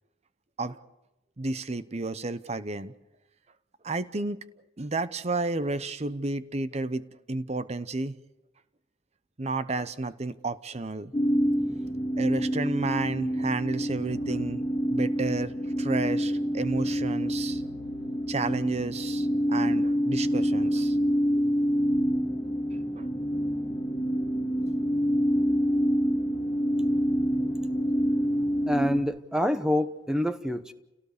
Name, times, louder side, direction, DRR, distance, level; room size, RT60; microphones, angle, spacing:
voice 1, 1.4-2.9 3.8-4.4 4.8-8.2 9.4-11.1 12.2-14.6 14.9-15.5 15.8-17.6 18.3-20.9 22.9-23.1, right 3 dB, 40° right, 0.8 m, -31 dB
sound 1, 11.1-29.0, equal, 15° left, 2.4 m, -27 dB
voice 2, 28.7-30.7, left 1 dB, 5° right, 1.0 m, -26 dB
29.5 x 18.0 x 6.8 m
head